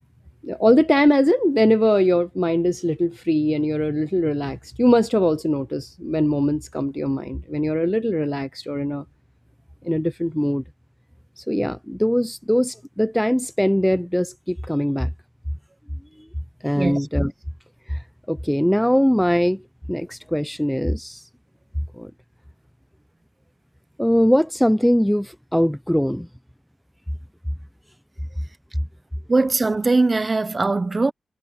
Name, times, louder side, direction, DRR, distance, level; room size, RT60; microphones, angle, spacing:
voice 1, 0.4-9.0 9.8-10.6 11.4-15.1 16.6-17.3 17.9-18.0 18.3-19.6 19.9-21.2 21.9-22.1 24.0-26.3, equal, 5° left, 0.7 m, -21 dB
voice 2, 16.7-17.1 29.3-31.1, right 3 dB, 30° right, 1.1 m, -20 dB
cardioid pair, 80°, 0 cm